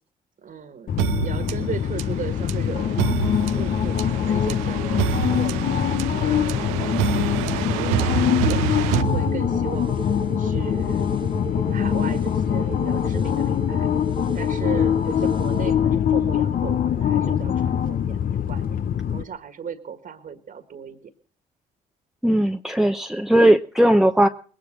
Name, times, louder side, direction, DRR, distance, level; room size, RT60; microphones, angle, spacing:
voice 1, 0.4-0.9 1.2-3.0 3.5-7.1 7.6-11.1 11.7-13.9 14.3-18.8 19.1-21.1, right 7 dB, 50° right, 8 dB, 1.8 m, -37 dB
sound 1, 0.9-19.2, left 9 dB, 50° left, 0.8 m, -23 dB
sound 2, 1.0-9.8, right 10 dB, 85° right, 0.7 m, -27 dB
sound 3, 9.0-15.7, right 4 dB, 25° right, 1.3 m, -35 dB
voice 2, 22.2-24.3, right 1 dB, ahead, 6 dB, 0.8 m, -18 dB
20.0 x 10.5 x 6.4 m, 0.43 s
hypercardioid pair, 60°, 18 cm